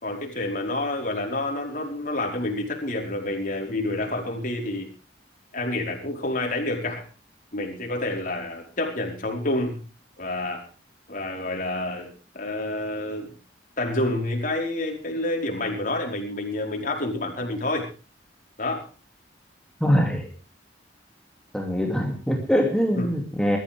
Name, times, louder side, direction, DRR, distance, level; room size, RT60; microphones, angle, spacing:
voice 1, 0.0-4.9 5.5-7.0 7.5-9.8 10.2-10.6 11.1-13.3 13.8-17.9 18.6-18.9 22.9-23.1, left 2 dB, 45° left, 1 dB, 5.0 m, -28 dB
voice 2, 19.8-20.3 21.5-23.6, equal, 5° left, 0 dB, 2.7 m, -23 dB
22.0 x 14.0 x 3.6 m, 0.33 s
head